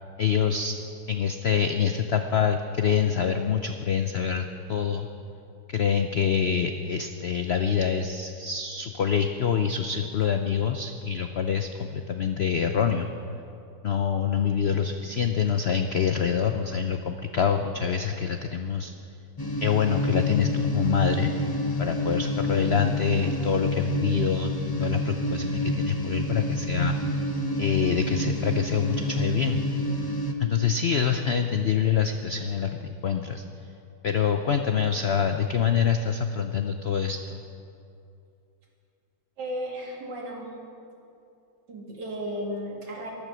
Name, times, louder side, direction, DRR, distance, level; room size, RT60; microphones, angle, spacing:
voice 1, 0.2-0.8 1.1-5.1 5.7-13.1 13.8-18.9 19.6-21.3 21.8-24.5 24.8-27.3 27.6-29.7 30.4-33.4 34.0-37.4, left 7 dB, 75° left, 6 dB, 0.5 m, -26 dB
sound 1, 19.4-30.3, equal, 25° left, 0.5 m, -28 dB
voice 2, 39.4-40.5 41.7-43.1, equal, 75° right, -3 dB, 3.0 m, -34 dB
14.5 x 12.0 x 6.3 m, 2.6 s
omnidirectional pair, 1.9 m